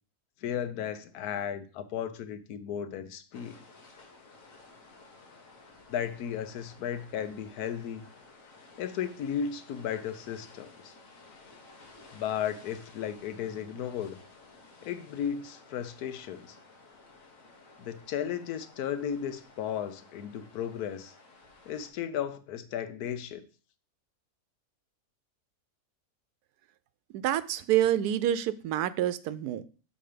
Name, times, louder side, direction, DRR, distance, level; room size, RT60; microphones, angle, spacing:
voice 1, 0.4-3.6 5.9-8.1 8.8-10.9 12.1-14.2 14.8-16.6 17.8-21.1 21.7-23.5, left 9 dB, 80° left, 1.2 m, -35 dB
sound 1, 3.3-21.9, left 3 dB, 60° left, 1.7 m, -55 dB
voice 2, 27.1-29.6, right 11 dB, 85° right, 1.1 m, -27 dB
6.3 x 4.8 x 5.0 m
omnidirectional pair, 1.6 m